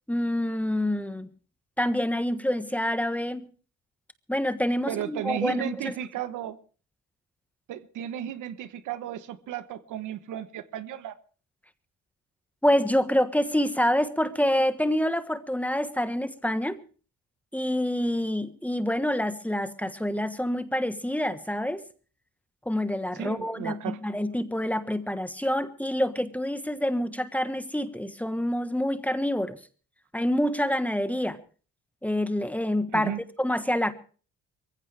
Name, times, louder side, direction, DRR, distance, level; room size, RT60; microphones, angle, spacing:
voice 1, 0.1-1.3 1.8-3.4 4.3-5.9 12.6-16.8 17.5-21.8 22.6-29.6 30.1-31.4 32.0-33.1 33.4-33.9, left 1 dB, 5° left, 1.4 m, -27 dB
voice 2, 4.9-6.6 7.7-11.2 23.1-24.0 32.9-33.2, right 11 dB, 85° right, 1.1 m, -34 dB
22.5 x 15.5 x 3.4 m
cardioid pair, 90°, 30 cm